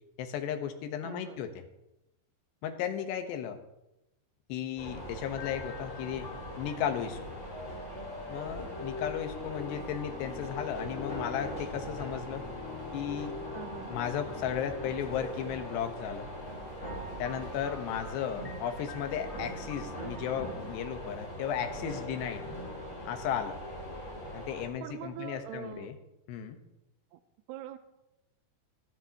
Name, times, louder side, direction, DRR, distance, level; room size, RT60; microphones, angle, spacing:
voice 1, 0.2-1.5 2.6-3.6 4.5-6.3 6.6-7.4 8.3-12.4 12.9-13.3 13.9-16.3 17.2-22.5 23.1-23.6 24.3-25.9 26.3-26.6, left 9 dB, 75° left, 7 dB, 3.2 m, -35 dB
voice 2, 1.0-1.5 13.5-14.0 18.4-18.6 24.8-25.9 27.1-27.2 27.5-27.8, right 11 dB, 80° right, 9 dB, 2.7 m, -43 dB
sound 1, 4.8-24.7, equal, 20° left, 3.3 m, -42 dB
sound 2, 5.3-22.9, left 3 dB, 40° left, 0.3 m, -45 dB
sound 3, 10.4-25.8, right 1 dB, 50° right, 5.3 m, -56 dB
24.5 x 10.0 x 2.9 m, 0.88 s
omnidirectional pair, 5.0 m